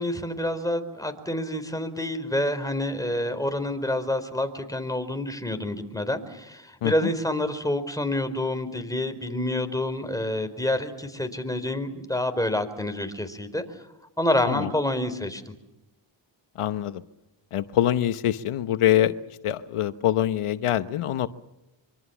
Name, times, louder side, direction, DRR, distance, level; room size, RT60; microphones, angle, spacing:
voice 1, 0.0-13.6 14.2-15.5, left 1 dB, 5° left, 8 dB, 4.5 m, -28 dB
voice 2, 16.6-17.0 17.5-19.1 19.4-21.3, left 12 dB, 90° left, 12 dB, 1.0 m, -24 dB
25.5 x 24.5 x 7.1 m, 0.93 s
cardioid pair, 55°, 50 cm